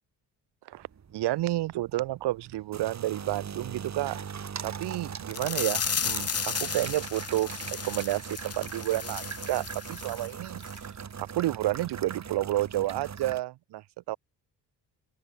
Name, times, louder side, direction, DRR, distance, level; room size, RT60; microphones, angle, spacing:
sound 1, 0.7-13.4, right 7 dB, 45° right, 5.1 m, -40 dB
voice 1, 1.1-4.2 4.6-10.6 11.2-14.2, right 15 dB, 85° right, 2.8 m, -30 dB
sound 2, 5.3-10.3 10.6-10.8 11.2-11.3, left 6 dB, 40° left, 3.6 m, -34 dB
open air
cardioid pair, 110°, 39 cm